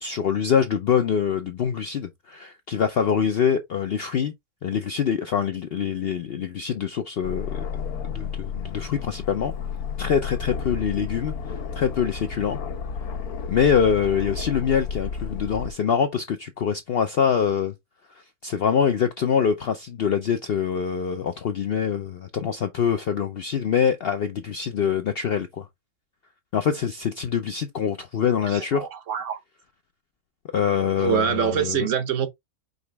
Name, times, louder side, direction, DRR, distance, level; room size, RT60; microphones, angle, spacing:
voice 1, 0.0-4.3 4.6-7.6 8.1-9.5 10.0-11.3 11.8-12.6 13.5-17.7 18.1-25.7 26.5-28.9 30.5-31.9, left 7 dB, 65° left, 0.6 m, -24 dB
Aircraft, 7.2-15.7, left 6 dB, 85° left, 1.3 m, -32 dB
voice 2, 28.5-29.4 31.0-32.3, right 8 dB, 65° right, 1.0 m, -25 dB
5.2 x 3.0 x 3.2 m
omnidirectional pair, 1.5 m